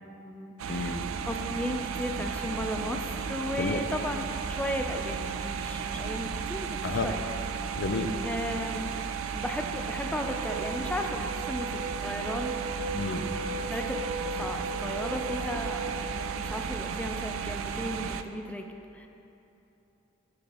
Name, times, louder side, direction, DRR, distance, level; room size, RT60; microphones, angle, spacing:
voice 1, 0.0-0.9 1.3-4.2 4.5-6.7 7.0-7.2 8.2-8.9 9.3-12.6 13.6-14.0 14.4-18.6 18.9-19.1, left 1 dB, 5° left, 3 dB, 0.4 m, -35 dB
sound 1, 0.6-18.2, right 6 dB, 90° right, 0.4 m, -34 dB
voice 2, 0.7-1.1 3.6-3.8 6.8-7.1 7.8-8.2 12.9-13.3, left 3 dB, 60° left, 7 dB, 0.5 m, -31 dB
sound 2, 10.1-16.1, right 1 dB, 25° right, 0.9 m, -38 dB
14.5 x 6.9 x 2.9 m, 3.0 s
head